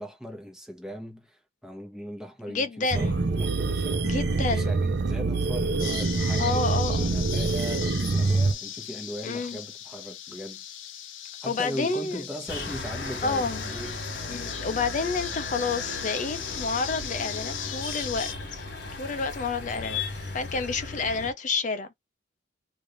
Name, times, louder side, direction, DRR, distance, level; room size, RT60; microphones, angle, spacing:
voice 1, 0.0-4.2 4.5-10.6 11.4-14.0, equal, 5° right, 1.0 m, -39 dB
voice 2, 2.5-3.2 4.0-4.7 6.4-7.2 9.2-9.6 11.5-12.2 13.2-13.6 14.3-18.7 19.0-20.0 20.3-21.9, left 4 dB, 40° left, 0.5 m, -29 dB
sound 1, 2.9-8.5, right 3 dB, 60° right, 0.6 m, -25 dB
sound 2, 5.8-18.3, left 10 dB, 80° left, 0.7 m, -38 dB
sound 3, 12.5-21.3, left 3 dB, 55° left, 1.5 m, -36 dB
3.2 x 2.6 x 3.8 m
head